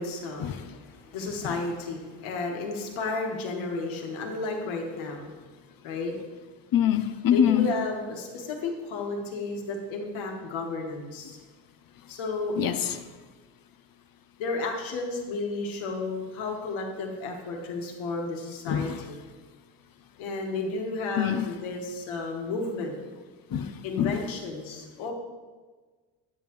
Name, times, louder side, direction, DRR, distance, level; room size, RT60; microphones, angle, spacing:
voice 1, 0.0-5.3 5.8-6.1 7.3-11.4 12.1-12.6 14.4-19.2 20.2-23.0 23.8-25.1, left 3 dB, 80° left, 1 dB, 1.7 m, -32 dB
voice 2, 6.7-7.7 12.6-13.0 18.7-19.1 21.2-21.5 23.5-24.2, left 9 dB, 45° left, 10 dB, 0.7 m, -25 dB
8.9 x 8.7 x 3.1 m, 1.4 s
supercardioid pair, 80°, 47 cm